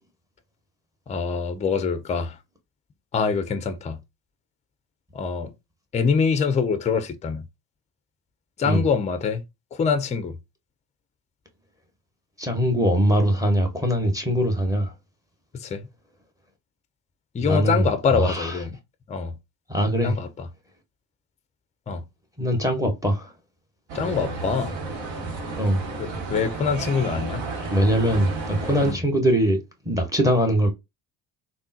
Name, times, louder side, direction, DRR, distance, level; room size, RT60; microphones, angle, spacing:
voice 1, 1.1-2.4 3.1-4.0 5.1-5.5 5.9-7.4 8.6-9.4 9.7-10.4 15.5-15.9 17.3-18.8 19.1-19.3 20.0-20.5 21.9-22.0 23.9-24.7 26.0-27.4 28.8-29.0, left 5 dB, 15° left, 0.4 m, -24 dB
voice 2, 12.4-14.9 17.4-18.6 19.7-20.2 22.4-23.3 25.6-25.8 27.7-29.6 29.8-30.7, equal, 5° right, 0.8 m, -22 dB
sound 1, 23.9-28.9, right 3 dB, 60° right, 1.1 m, -32 dB
3.5 x 2.1 x 2.7 m
hypercardioid pair, 55°, 49 cm